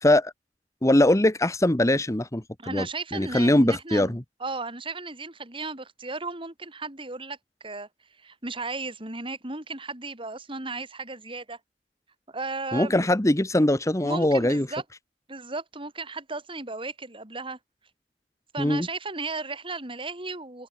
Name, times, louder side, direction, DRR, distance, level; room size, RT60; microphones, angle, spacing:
voice 1, 0.0-0.3 0.8-2.9 3.1-4.2 12.7-14.7 18.6-18.9, left 1 dB, 20° left, 1.1 m, -22 dB
voice 2, 2.6-7.4 7.6-7.9 8.2-11.6 12.3-13.1 14.0-14.8 15.3-17.6 18.5-20.7, right 3 dB, 30° right, 4.0 m, -35 dB
open air
head